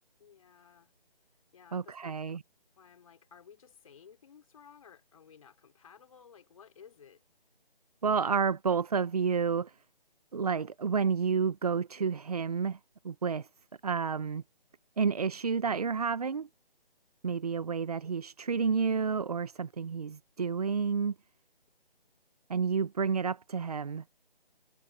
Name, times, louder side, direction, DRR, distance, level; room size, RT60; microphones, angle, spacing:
voice 1, 0.2-0.9 1.5-2.4 2.8-7.2, left 7 dB, 35° left, 4.2 m, -56 dB
voice 2, 1.7-2.4 8.0-9.7 10.3-12.8 13.0-13.5 13.8-14.4 15.0-16.5 17.2-21.1 22.5-24.0, right 6 dB, 40° right, 1.1 m, -30 dB
figure-of-eight pair, 165°, 30 cm